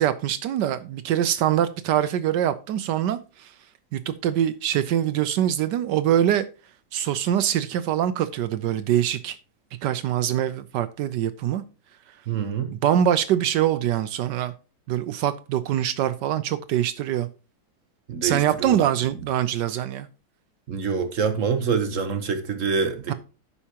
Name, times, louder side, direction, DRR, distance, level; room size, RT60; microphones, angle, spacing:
voice 1, 0.0-3.5 3.9-6.4 6.9-9.4 9.8-11.6 12.7-14.5 14.9-17.3 18.2-20.1 23.1-23.2, right 11 dB, 75° right, 1.2 m, -24 dB
voice 2, 12.3-12.7 18.1-18.7 20.7-23.1, right 6 dB, 55° right, 1.1 m, -26 dB
14.5 x 5.7 x 2.8 m
omnidirectional pair, 1.9 m